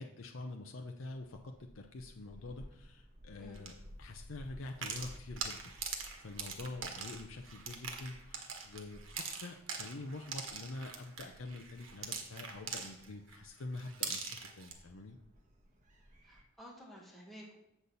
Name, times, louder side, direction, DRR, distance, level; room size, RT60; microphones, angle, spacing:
voice 1, 0.0-5.7 6.2-15.2, left 2 dB, 80° left, 4 dB, 0.7 m, -46 dB
Gull seagull, 1.1-16.4, equal, 40° right, 1.3 m, -57 dB
sound 1, 3.5-3.7 4.7-13.4 13.7-14.7, right 6 dB, 80° right, 1.3 m, -42 dB
voice 2, 16.2-17.6, equal, ahead, -3 dB, 1.6 m, -53 dB
8.1 x 4.1 x 6.8 m, 0.83 s
head